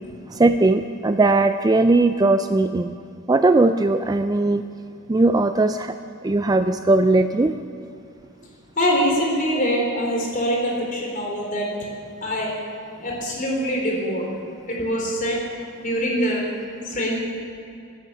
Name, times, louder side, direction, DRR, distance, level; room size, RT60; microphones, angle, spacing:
voice 1, 0.3-2.9 3.3-4.6 5.1-6.0 6.2-7.6, right 2 dB, 15° right, 9 dB, 0.3 m, -18 dB
voice 2, 8.8-11.7 12.2-12.5 13.0-14.2 14.7-15.4 15.8-16.4 16.8-17.2, equal, 35° left, -1 dB, 3.8 m, -23 dB
15.5 x 10.5 x 8.9 m, 2.6 s
head